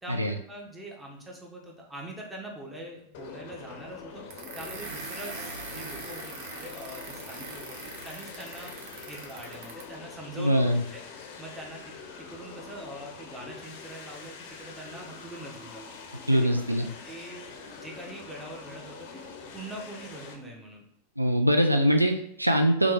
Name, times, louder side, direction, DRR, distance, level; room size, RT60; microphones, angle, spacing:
voice 1, 0.0-8.7 9.1-11.0 11.4-11.9 12.3-15.8 16.3-19.2 19.5-20.8, right 1 dB, 10° right, -2 dB, 1.0 m, -43 dB
sound 1, 3.1-20.4, left 5 dB, 45° left, 0.6 m, -45 dB
sound 2, 4.3-10.0, right 4 dB, 50° right, 0.7 m, -42 dB
voice 2, 10.4-10.8 16.3-16.9 21.2-22.9, equal, 85° right, 5 dB, 0.3 m, -23 dB
3.5 x 3.3 x 3.5 m, 0.73 s
figure-of-eight pair, 90°, 0 cm